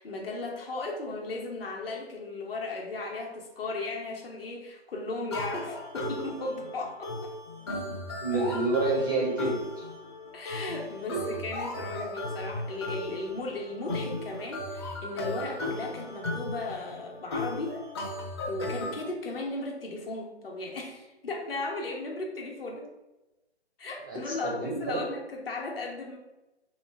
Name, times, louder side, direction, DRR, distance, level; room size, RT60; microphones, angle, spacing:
voice 1, 0.0-7.3 10.3-17.8 18.5-22.9 23.8-26.2, left 2 dB, 55° left, 0 dB, 1.2 m, -36 dB
sound 1, 5.3-19.0, left 1 dB, 25° left, 0.6 m, -36 dB
voice 2, 8.2-9.9 24.1-25.0, right 2 dB, 20° right, -3 dB, 0.4 m, -29 dB
3.2 x 3.0 x 4.3 m, 0.99 s
figure-of-eight pair, 140°, 34 cm